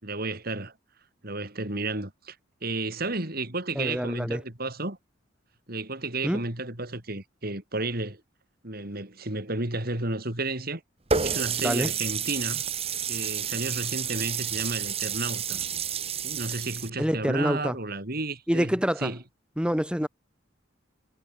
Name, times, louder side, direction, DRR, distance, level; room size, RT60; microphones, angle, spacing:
voice 1, 0.0-0.7 1.2-2.4 2.6-5.0 5.7-8.2 8.6-10.8 11.2-12.6 13.1-15.6 16.2-18.7 19.0-19.2, right 2 dB, 50° right, 4.1 m, -32 dB
voice 2, 3.8-4.4 6.2-6.4 11.6-11.9 17.0-17.8 18.5-19.1 19.6-20.1, equal, 5° right, 2.4 m, -26 dB
Water tap faucet, 11.1-16.9, right 7 dB, 30° right, 1.3 m, -30 dB
head